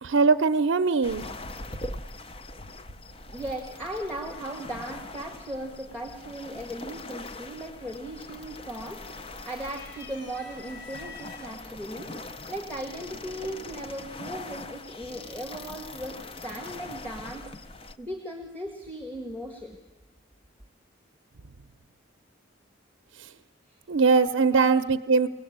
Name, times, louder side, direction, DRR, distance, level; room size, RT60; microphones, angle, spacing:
voice 1, 0.0-1.3 23.2-23.3 23.9-25.3, right 4 dB, 80° right, 9 dB, 0.6 m, -21 dB
sound 1, 1.0-18.0, left 2 dB, 25° left, 0.6 m, -42 dB
voice 2, 3.2-12.2 12.5-17.5 18.0-19.8 23.7-23.8 24.5-24.8, right 1 dB, 10° left, 2 dB, 1.6 m, -37 dB
sound 2, 9.6-11.6 12.4-12.5 13.8-14.2, left 4 dB, 70° left, 3.2 m, -47 dB
23.5 x 18.0 x 8.7 m, 1.3 s
head